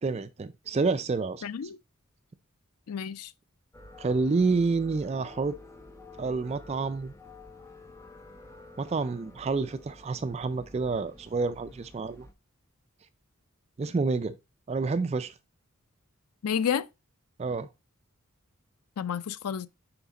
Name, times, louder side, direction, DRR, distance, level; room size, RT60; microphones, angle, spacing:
voice 1, 0.0-1.4 4.0-5.6 6.2-7.1 8.8-12.3 13.8-14.4 14.7-15.3 17.4-17.7, right 4 dB, 30° right, 0.3 m, -28 dB
voice 2, 1.4-1.8 2.9-3.3 16.4-16.9 19.0-19.7, left 7 dB, 90° left, 0.4 m, -30 dB
sound 1, 3.7-12.3, left 2 dB, 15° left, 0.7 m, -50 dB
5.9 x 5.0 x 4.0 m
head